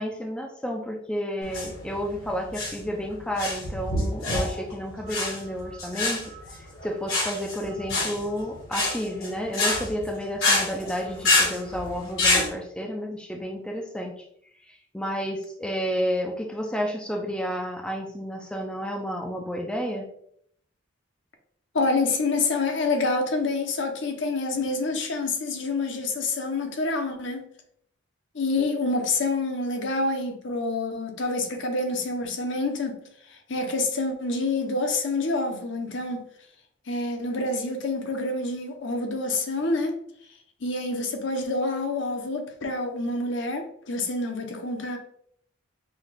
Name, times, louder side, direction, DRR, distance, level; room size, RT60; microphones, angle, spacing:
voice 1, 0.0-6.3 6.8-14.2 14.6-20.1, equal, 5° left, 0.3 m, -31 dB
sound 1, 1.4-12.5, left 2 dB, 85° left, 1.5 m, -27 dB
voice 2, 21.7-27.5 28.3-33.0 33.3-36.2 36.9-40.0 40.6-45.0, left 3 dB, 60° left, 0.7 m, -27 dB
5.4 x 2.3 x 3.2 m
head